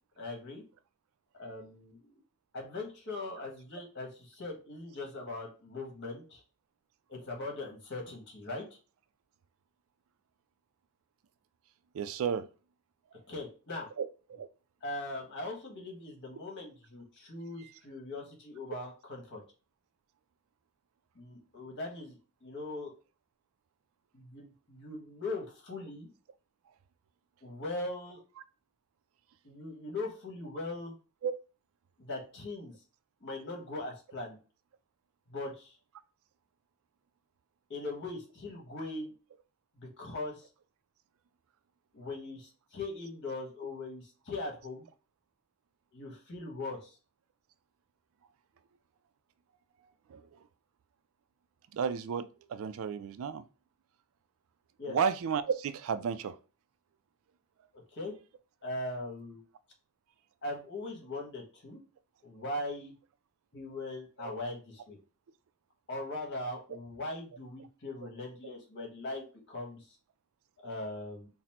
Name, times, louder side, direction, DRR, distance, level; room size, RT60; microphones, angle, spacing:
voice 1, 0.2-0.6 1.3-2.2 2.5-6.4 7.1-8.8 13.3-13.9 14.8-19.4 21.1-22.9 24.1-26.1 27.4-28.2 29.4-30.9 32.0-32.7 33.2-34.4 35.3-35.8 37.7-39.1 39.8-40.5 41.9-44.8 45.9-47.0 54.8-55.0 57.7-58.1 58.6-59.4 60.4-61.8 62.2-62.9 63.5-65.0 65.9-69.9 70.6-71.3, left 2 dB, 55° left, 1.3 m, -40 dB
voice 2, 11.9-12.5 14.0-14.5 31.2-31.3 50.1-50.3 51.7-53.4 54.9-56.4 64.2-64.4 68.0-68.1, right 6 dB, 65° right, 0.3 m, -33 dB
4.0 x 2.0 x 4.2 m
head